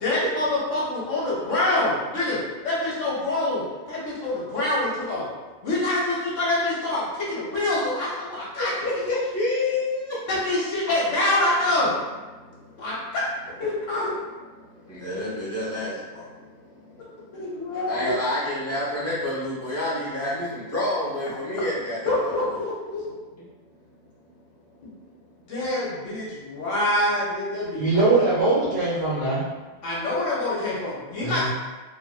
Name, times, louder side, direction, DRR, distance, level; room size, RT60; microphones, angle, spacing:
voice 1, 0.0-5.3 5.6-8.7 9.0-9.1 10.3-11.9 12.8-13.2 13.6-14.1 17.3-18.1 22.1-23.1 24.8-24.9 25.5-28.2 29.8-31.5, left 1 dB, 60° left, -6 dB, 0.9 m, -26 dB
voice 2, 8.6-10.2 14.9-16.2 17.9-22.6, left 2 dB, 15° left, -10 dB, 0.6 m, -28 dB
voice 3, 27.8-29.5 31.2-31.5, right 3 dB, 85° right, -10 dB, 0.4 m, -22 dB
2.8 x 2.5 x 2.3 m, 1.2 s
omnidirectional pair, 1.7 m